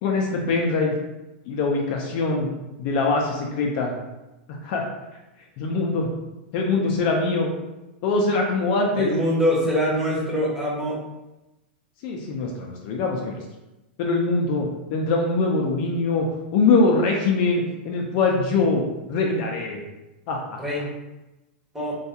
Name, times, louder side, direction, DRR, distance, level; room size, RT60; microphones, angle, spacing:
voice 1, 0.0-0.9 1.5-2.5 2.8-3.9 4.6-4.9 5.6-6.1 6.5-7.5 8.0-9.1 12.0-13.4 14.0-16.3 16.5-18.8 19.1-19.8 20.3-20.6, left 3 dB, 50° left, 0 dB, 0.4 m, -23 dB
voice 2, 9.0-11.0 20.6-20.9 21.7-21.9, equal, 5° right, -6 dB, 0.7 m, -24 dB
2.3 x 2.2 x 2.7 m, 1.0 s
hypercardioid pair, 135°, 6 cm